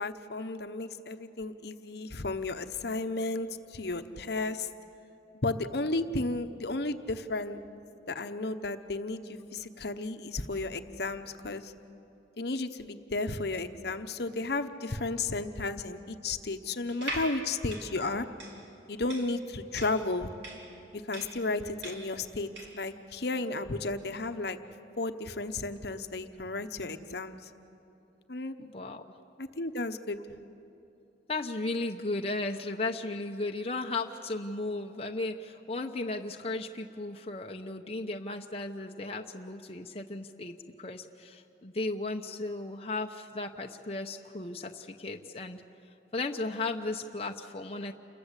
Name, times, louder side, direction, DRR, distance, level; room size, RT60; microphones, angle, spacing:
voice 1, 0.0-4.7 5.4-7.6 8.1-11.7 12.4-18.3 18.9-20.3 20.9-24.6 25.0-27.5 28.3-28.6 29.4-30.2, left 2 dB, 60° left, 9 dB, 1.0 m, -33 dB
sound 1, 16.9-22.9, right 1 dB, 75° right, 4.1 m, -41 dB
voice 2, 28.6-29.0 31.3-45.6 46.1-47.9, left 2 dB, 30° left, 2 dB, 0.8 m, -35 dB
29.0 x 22.0 x 8.3 m, 2.9 s
head